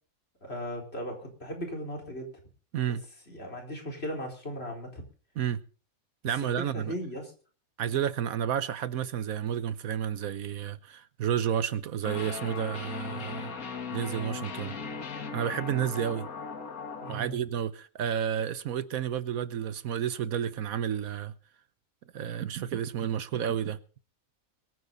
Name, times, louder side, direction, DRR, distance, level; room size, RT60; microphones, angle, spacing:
voice 1, 0.4-2.3 2.9-3.0 3.3-5.0 6.4-7.3 17.0-17.4, equal, 45° left, 4.8 m, -37 dB
voice 2, 6.2-6.9 7.8-13.5 13.9-14.7 15.3-16.3 17.1-21.3 22.1-23.8, right 9 dB, 75° right, 1.3 m, -31 dB
sound 1, 12.0-17.2, left 5 dB, 80° left, 2.1 m, -38 dB
23.0 x 9.5 x 4.0 m
omnidirectional pair, 1.5 m